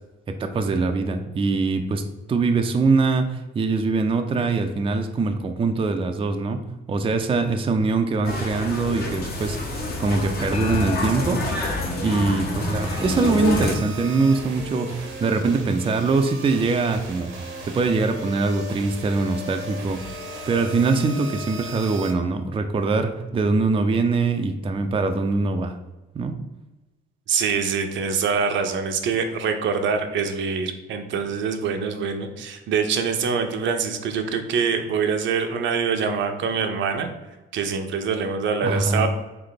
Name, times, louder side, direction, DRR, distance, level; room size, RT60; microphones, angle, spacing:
voice 1, 0.3-2.0 2.3-6.6 6.9-11.4 12.0-17.3 17.6-20.0 20.5-25.8 26.1-26.4 38.6-39.1, right 3 dB, 25° right, 6 dB, 0.4 m, -23 dB
sound 1, 8.2-13.7, left 2 dB, 50° left, 1.2 m, -27 dB
sound 2, 10.5-13.2, left 3 dB, 30° left, 0.7 m, -33 dB
sound 3, 12.7-22.1, equal, 90° right, 1.0 m, -37 dB
voice 2, 27.3-37.1 37.5-39.1, right 6 dB, 70° right, 6 dB, 0.6 m, -24 dB
3.7 x 3.3 x 4.0 m, 1.1 s
cardioid pair, 90°, 20 cm